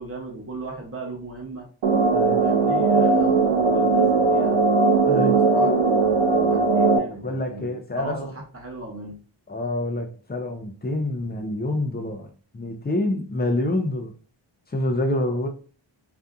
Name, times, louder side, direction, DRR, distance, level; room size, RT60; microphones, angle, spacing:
voice 1, 0.0-1.7 2.4-4.6 5.3-9.2, right 2 dB, 30° right, 1.0 m, -37 dB
sound 1, 1.8-7.0, right 4 dB, 90° right, 0.5 m, -19 dB
voice 2, 5.0-5.4 7.2-8.3 9.5-12.3 12.5-14.1 14.7-15.5, left 1 dB, 20° left, 0.5 m, -26 dB
2.6 x 2.4 x 2.3 m
wide cardioid pair, 60°, 47 cm